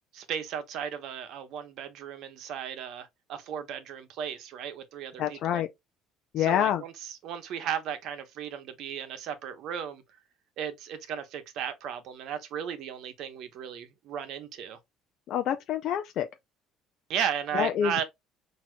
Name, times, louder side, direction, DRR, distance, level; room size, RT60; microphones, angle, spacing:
voice 1, 0.1-5.6 6.4-10.0 10.6-14.8 17.1-18.0, right 8 dB, 55° right, 1.0 m, -35 dB
voice 2, 5.2-5.7 6.3-6.8 15.3-16.3 17.5-17.9, left 10 dB, 50° left, 0.4 m, -27 dB
6.0 x 2.8 x 2.3 m
cardioid pair, 155°, 0 cm